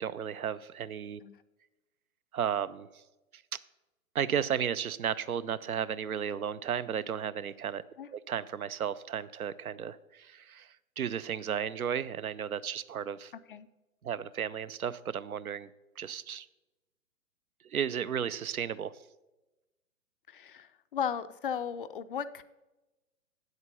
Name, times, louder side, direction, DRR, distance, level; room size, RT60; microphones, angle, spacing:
voice 1, 0.0-1.2 2.3-3.0 3.3-3.4 4.1-7.8 8.1-13.3 14.0-15.7 16.0-16.5 17.6-18.9, right 8 dB, 80° right, 17 dB, 0.6 m, -34 dB
voice 2, 20.3-22.4, left 8 dB, 40° left, 13 dB, 0.4 m, -36 dB
8.6 x 8.0 x 5.4 m, 1.0 s
figure-of-eight pair, 120°, 42 cm